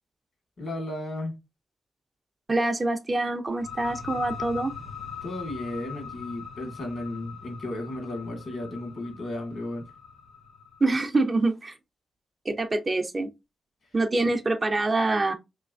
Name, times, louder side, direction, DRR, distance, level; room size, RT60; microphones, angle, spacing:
voice 1, 0.6-1.3 5.2-9.9, left 1 dB, 60° left, 1.7 m, -34 dB
voice 2, 2.5-4.7 10.8-11.8 12.4-13.3 13.9-15.3, right 2 dB, 30° right, 0.5 m, -25 dB
sound 1, 3.5-11.0, left 6 dB, 85° left, 1.9 m, -41 dB
3.2 x 3.0 x 2.5 m
cardioid pair, 100°, 0 cm